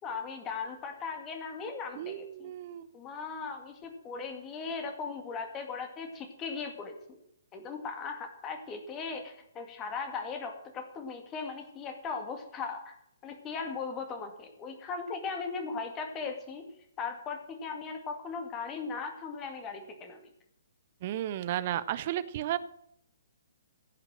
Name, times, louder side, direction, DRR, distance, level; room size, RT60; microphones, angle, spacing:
voice 1, 0.0-2.5 2.9-7.2 7.5-13.0 13.2-16.7 17.0-20.2, left 5 dB, 20° left, 5 dB, 2.1 m, -38 dB
voice 2, 2.0-2.9 21.0-22.6, right 12 dB, 40° right, 15 dB, 0.6 m, -33 dB
16.5 x 6.0 x 7.5 m, 0.75 s
figure-of-eight pair, 125°, 0 cm